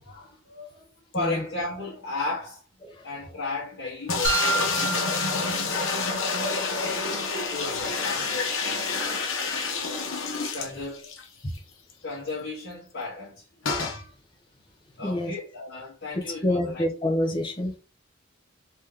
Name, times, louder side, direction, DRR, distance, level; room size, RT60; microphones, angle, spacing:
voice 1, 0.0-0.9 1.1-2.6 3.0-6.7 7.5-9.9 10.5-11.1 12.0-13.5 15.0-16.8, left 3 dB, 55° left, 1.3 m, -35 dB
sound 1, 4.1-11.2 11.6-11.7 11.9-12.0 13.6-14.0, left 4 dB, 70° left, 1.0 m, -28 dB
sound 2, 4.2-6.3, right 4 dB, 60° right, 1.4 m, -29 dB
voice 2, 15.0-15.3 16.4-17.7, left 1 dB, 25° left, 0.8 m, -26 dB
3.4 x 3.0 x 3.6 m
head